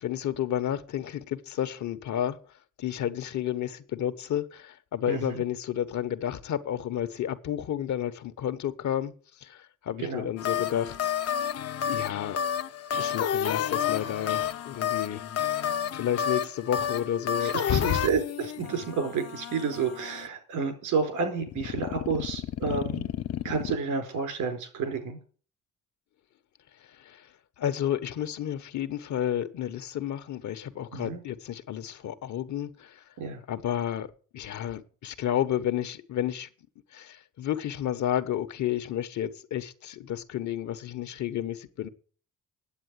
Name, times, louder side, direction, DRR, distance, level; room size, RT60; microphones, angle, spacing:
voice 1, 0.0-2.4 2.8-9.1 9.4-11.1 11.9-12.4 13.0-15.2 15.6-18.1 26.9-27.3 27.6-33.0 33.5-34.1 34.3-36.5 36.9-41.9, left 10 dB, 70° left, 1.3 m, -31 dB
voice 2, 5.1-5.4 10.0-10.3 17.4-23.1 23.4-25.2 30.9-31.2 33.2-33.4, right 5 dB, 85° right, 4.5 m, -30 dB
sound 1, 10.4-20.3 21.4-23.8, left 9 dB, 55° left, 0.7 m, -31 dB
9.5 x 8.1 x 9.5 m
cardioid pair, 90°, 30 cm